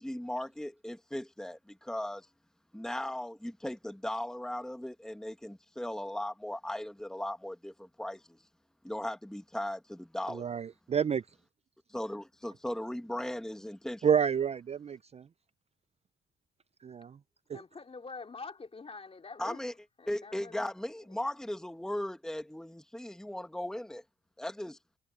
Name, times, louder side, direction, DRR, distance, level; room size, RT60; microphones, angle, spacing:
voice 1, 0.0-2.3 2.7-8.4 8.8-10.5 11.9-14.1 19.4-19.7 20.1-24.0 24.4-24.8, left 1 dB, 5° left, 1.5 m, -37 dB
voice 2, 10.3-11.2 14.0-15.3 16.8-17.2 17.5-17.6, right 8 dB, 30° right, 0.5 m, -29 dB
voice 3, 17.5-19.6 20.0-20.6, left 4 dB, 30° left, 2.9 m, -45 dB
cardioid pair, 90°, 20 cm